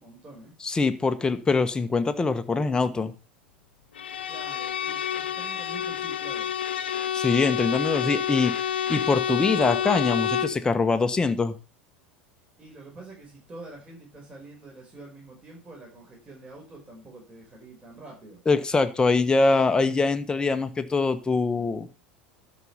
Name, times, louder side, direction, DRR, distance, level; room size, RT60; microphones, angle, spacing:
voice 1, 0.0-0.5 4.3-6.5 12.6-18.4, right 2 dB, 20° right, 4.5 m, -46 dB
voice 2, 0.6-3.1 7.1-11.5 18.5-21.9, left 4 dB, 15° left, 1.2 m, -23 dB
Bowed string instrument, 4.0-10.6, left 9 dB, 70° left, 0.7 m, -28 dB
12.5 x 5.3 x 5.6 m
figure-of-eight pair, 80°, 6 cm